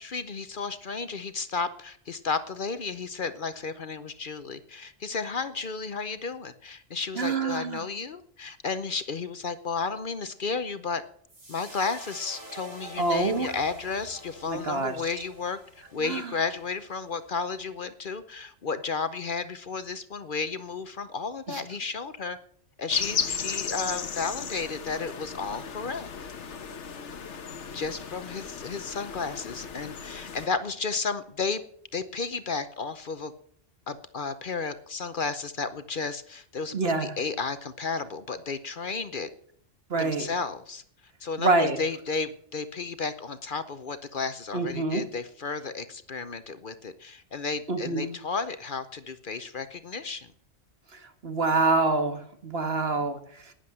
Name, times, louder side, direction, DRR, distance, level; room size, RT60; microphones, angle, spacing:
voice 1, 0.0-11.0 11.5-22.4 22.8-26.1 27.7-31.6 31.9-33.3 33.9-39.3 40.0-40.8 41.2-50.3 53.0-53.1, left 4 dB, 50° left, 12 dB, 0.9 m, -33 dB
voice 2, 7.2-7.8 13.0-13.5 14.5-14.9 16.0-16.3 21.5-21.6 36.7-37.2 39.9-40.3 41.4-41.8 44.5-45.1 47.7-48.1 50.9-53.5, right 3 dB, 60° right, 7 dB, 1.8 m, -26 dB
sound 1, 11.3-17.7, right 1 dB, 90° right, 4.1 m, -48 dB
sound 2, 22.9-30.5, left 6 dB, 85° left, 1.4 m, -35 dB
11.5 x 10.0 x 7.7 m, 0.64 s
omnidirectional pair, 1.2 m